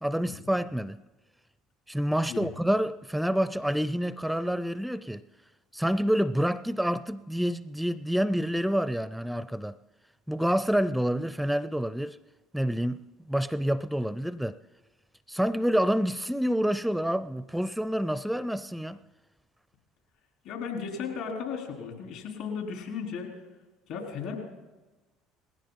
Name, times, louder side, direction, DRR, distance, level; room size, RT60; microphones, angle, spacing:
voice 1, 0.0-1.0 1.9-5.2 5.7-9.8 10.3-12.2 12.5-14.6 15.3-19.0, equal, ahead, 0.4 m, -28 dB
voice 2, 20.4-23.3 23.9-24.4, left 6 dB, 70° left, 3.9 m, -35 dB
19.5 x 15.5 x 4.1 m
hypercardioid pair, 65°, 0 cm